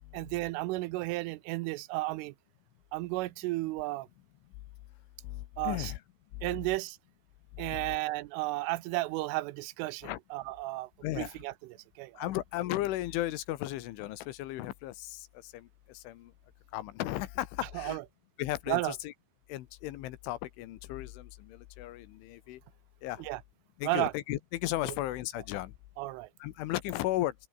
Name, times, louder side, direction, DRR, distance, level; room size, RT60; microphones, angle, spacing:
voice 1, 0.1-2.3 2.9-4.1 5.6-5.9 6.4-7.0 7.6-10.9 11.2-11.5 12.0-12.3 17.7-18.0 18.7-18.9 23.2-23.4 23.8-24.1 26.0-26.3, right 19 dB, 85° right, 3.3 m, -33 dB
voice 2, 5.2-6.0 6.3-6.5 7.6-8.0 10.0-10.2 11.0-11.4 12.2-16.3 16.7-18.0 18.4-19.1 19.5-22.6 23.0-23.3 23.8-25.7 26.4-27.4, left 15 dB, 80° left, 3.6 m, -35 dB
open air
omnidirectional pair, 5.7 m